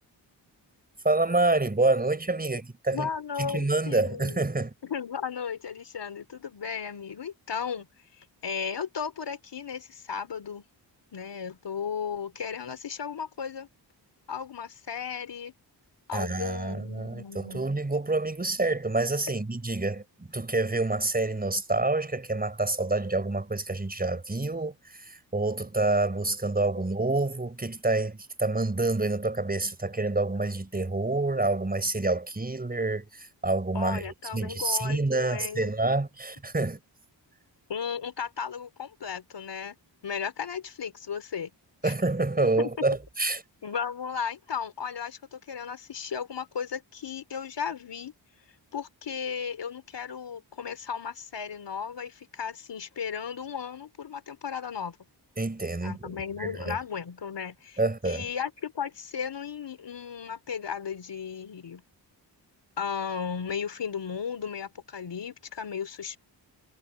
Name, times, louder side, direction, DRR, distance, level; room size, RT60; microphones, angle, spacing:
voice 1, 1.0-3.1 3.4-4.7 16.1-34.0 34.3-36.8 41.8-43.4 55.4-56.8 57.8-58.3, right 2 dB, 20° right, 5.7 m, -27 dB
voice 2, 2.9-4.4 4.8-7.9 8.2-10.6 11.1-13.7 14.3-15.5 16.1-17.6 19.3-19.4 33.7-35.7 37.7-39.8 40.0-41.5 41.8-41.9 42.6-42.8 43.6-48.1 48.7-55.0 55.8-57.8 58.0-61.8 62.8-66.2, left 7 dB, 70° left, 4.0 m, -35 dB
wide cardioid pair, 145°, 44 cm